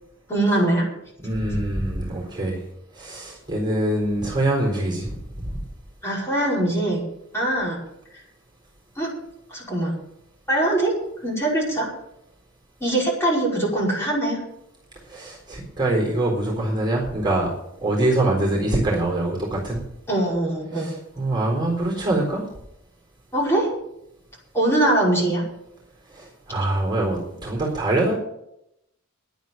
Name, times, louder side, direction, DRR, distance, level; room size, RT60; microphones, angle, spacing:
voice 1, 0.3-0.8 6.0-7.0 7.3-7.8 9.0-9.1 9.5-9.9 10.5-10.9 11.2-11.9 12.8-14.4 20.1-20.9 23.3-23.7 24.5-25.4, right 1 dB, 15° left, -5 dB, 5.3 m, -22 dB
voice 2, 1.2-2.6 2.9-5.2 5.5-5.6 15.1-17.5 17.8-19.8 20.7-22.5 26.1-28.2, right 1 dB, 20° right, -1 dB, 4.0 m, -24 dB
11.0 x 9.2 x 8.8 m, 0.81 s
head